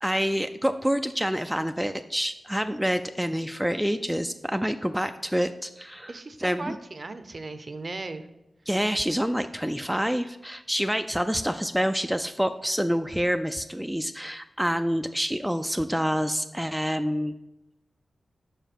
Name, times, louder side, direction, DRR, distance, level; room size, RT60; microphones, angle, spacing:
voice 1, 0.0-6.1 6.4-6.8 8.7-17.3, equal, 5° right, 8 dB, 0.3 m, -27 dB
voice 2, 6.1-8.3, right 3 dB, 45° right, 10 dB, 0.6 m, -37 dB
5.7 x 5.0 x 4.4 m, 0.95 s
cardioid pair, 55°, 0 cm